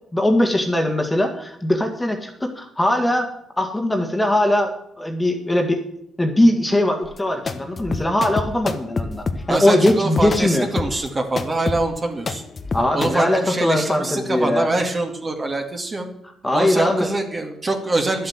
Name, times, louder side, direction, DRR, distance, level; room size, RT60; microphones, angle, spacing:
voice 1, 0.1-3.3 3.6-5.8 6.2-10.7 12.7-14.7 16.4-17.1, left 1 dB, 10° left, 4 dB, 1.9 m, -20 dB
sound 1, 7.0-13.1, left 4 dB, 35° left, 1.1 m, -28 dB
voice 2, 9.5-12.4 12.9-16.1 16.5-18.3, right 2 dB, 30° right, 3 dB, 2.1 m, -24 dB
11.5 x 7.8 x 7.2 m, 0.78 s
cardioid pair, 90°, 0 cm